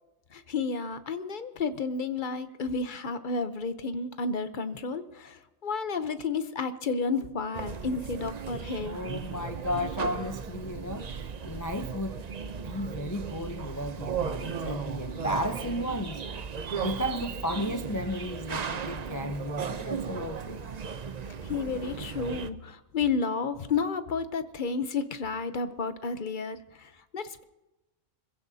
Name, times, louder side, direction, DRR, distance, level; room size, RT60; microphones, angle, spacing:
voice 1, 0.3-9.0 21.4-27.4, left 4 dB, 45° left, 11 dB, 0.9 m, -31 dB
sound 1, 7.5-22.5, right 6 dB, 45° right, 0.6 m, -36 dB
voice 2, 8.8-16.2 16.7-20.7, left 1 dB, 20° left, 7 dB, 0.5 m, -34 dB
25.0 x 16.0 x 2.8 m, 1.0 s
omnidirectional pair, 1.3 m